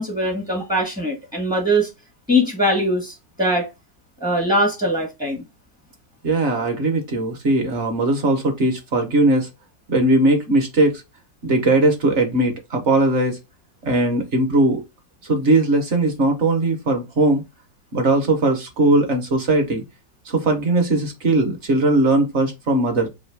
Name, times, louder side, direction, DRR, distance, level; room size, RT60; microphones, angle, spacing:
voice 1, 0.0-1.9 2.3-3.7 4.2-5.4, equal, 5° right, 0.5 m, -21 dB
voice 2, 6.2-9.5 9.9-10.9 11.4-13.4 13.8-14.8 15.2-17.4 17.9-19.8 20.3-23.1, right 2 dB, 50° right, 0.9 m, -19 dB
3.2 x 2.8 x 4.5 m
omnidirectional pair, 2.0 m